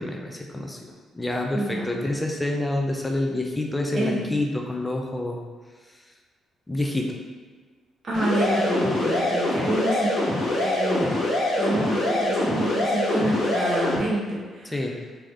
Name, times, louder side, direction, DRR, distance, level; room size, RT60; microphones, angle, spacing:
voice 1, 0.0-5.4 6.7-7.1 14.7-15.0, left 1 dB, 15° left, 1 dB, 0.6 m, -28 dB
voice 2, 1.5-1.9 3.9-4.2 8.0-10.1 10.5-11.2 11.6-14.7, right 1 dB, 40° right, -8 dB, 1.4 m, -27 dB
sound 1, 8.1-14.0, left 1 dB, 65° left, 1.4 m, -24 dB
3.9 x 2.9 x 3.4 m, 1.4 s
cardioid pair, 90°, 0 cm